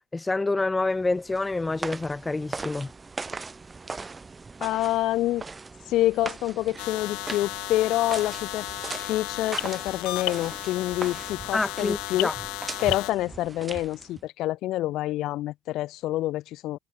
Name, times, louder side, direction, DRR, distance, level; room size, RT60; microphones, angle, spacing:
voice 1, 0.1-2.9 11.5-12.3, left 3 dB, 15° left, 1.2 m, -27 dB
sound 1, 1.0-14.3, right 4 dB, 20° right, 5.5 m, -39 dB
voice 2, 4.6-5.4 5.9-8.7 8.9-12.3 12.8-16.8, left 15 dB, 65° left, 4.3 m, -27 dB
sound 2, 6.8-13.1, left 24 dB, 80° left, 7.7 m, -34 dB
cardioid pair, 115°, 0 cm